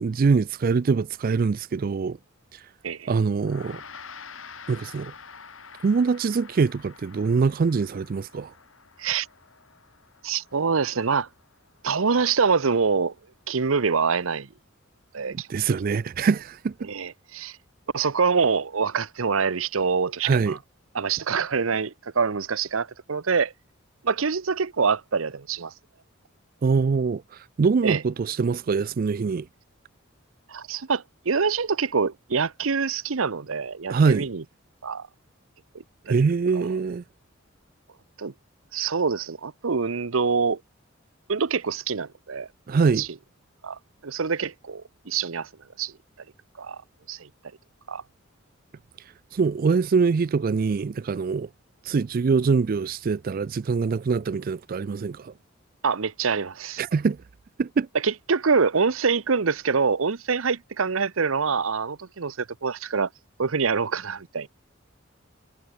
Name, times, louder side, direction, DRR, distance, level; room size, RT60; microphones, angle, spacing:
voice 1, 0.0-2.2 2.5-2.6 3.1-3.8 4.7-5.1 5.8-8.5 15.3-16.9 20.2-20.6 26.6-29.5 33.9-34.3 36.1-37.0 42.7-43.1 49.3-51.5 51.8-55.3 56.8-57.2 57.6-57.9, right 5 dB, 45° right, 0.4 m, -23 dB
Gong, 3.4-12.9, left 5 dB, 80° left, 5.0 m, -47 dB
voice 2, 10.2-11.3 11.8-13.1 13.5-14.5 15.1-15.5 16.8-17.6 17.9-20.6 20.9-23.5 24.0-25.7 27.8-28.0 30.5-34.4 34.8-35.1 36.1-36.2 38.2-38.3 38.7-40.6 41.3-42.5 43.0-43.1 43.6-45.5 45.8-45.9 46.6-46.8 47.1-47.3 47.9-48.0 55.8-56.8 58.0-63.1 63.4-64.5, right 5 dB, 90° right, 0.8 m, -25 dB
head